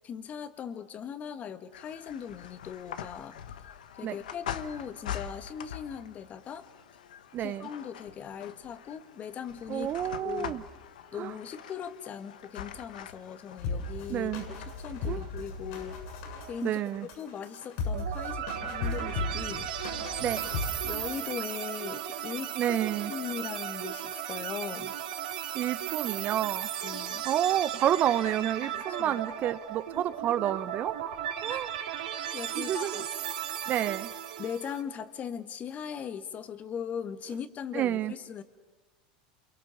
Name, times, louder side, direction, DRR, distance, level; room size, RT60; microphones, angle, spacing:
voice 1, 0.0-3.4 4.0-6.7 7.4-9.9 10.2-10.7 11.1-16.0 16.5-16.8 17.2-19.7 20.8-22.8 23.1-24.9 26.8-27.3 28.7-29.2 31.5-31.7 32.3-33.1 34.4-38.4, left 8 dB, 35° left, 11 dB, 1.6 m, -39 dB
sound 1, 1.7-17.1, left 9 dB, 85° left, 1.2 m, -44 dB
voice 2, 7.3-7.7 9.7-10.6 11.2-11.3 14.1-14.4 15.1-15.2 16.6-17.1 20.2-20.5 22.6-23.1 25.5-26.7 27.2-30.9 31.4-31.8 32.5-33.0 33.7-34.1 37.7-38.1, right 11 dB, 40° right, 14 dB, 0.9 m, -29 dB
sound 2, 13.6-21.1, left 3 dB, 65° left, 7.2 m, -36 dB
sound 3, 17.9-34.8, right 10 dB, 80° right, 2.5 m, -36 dB
28.5 x 23.0 x 7.1 m, 1.2 s
hypercardioid pair, 100°, 4 cm